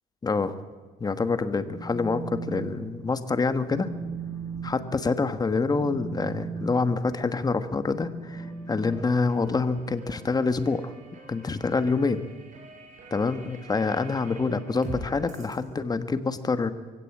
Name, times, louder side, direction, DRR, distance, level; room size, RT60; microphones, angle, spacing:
voice 1, 0.2-0.6 1.0-3.9 4.6-10.9 11.3-12.2 13.1-16.7, left 4 dB, 25° left, 10 dB, 1.5 m, -26 dB
Telephone, 1.6-2.7 3.0-3.3 3.6-9.8, right 4 dB, 5° right, 4.2 m, -38 dB
sound 1, 8.3-15.6, right 4 dB, 45° right, 6.3 m, -46 dB
23.5 x 16.5 x 8.6 m, 1.4 s
cardioid pair, 110°, 17 cm